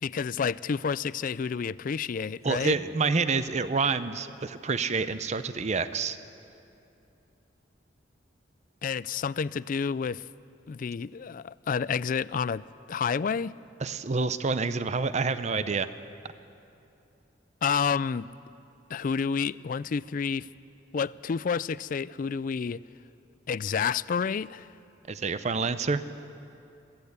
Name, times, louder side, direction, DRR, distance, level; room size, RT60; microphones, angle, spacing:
voice 1, 0.0-2.8 8.8-10.2 10.7-13.6 17.6-18.3 18.9-20.5 20.9-22.8 23.5-24.7, left 6 dB, 50° left, 0.4 m, -29 dB
voice 2, 2.4-6.2 13.8-15.9 25.1-26.0, right 4 dB, 40° right, 0.6 m, -28 dB
22.0 x 15.5 x 8.1 m
head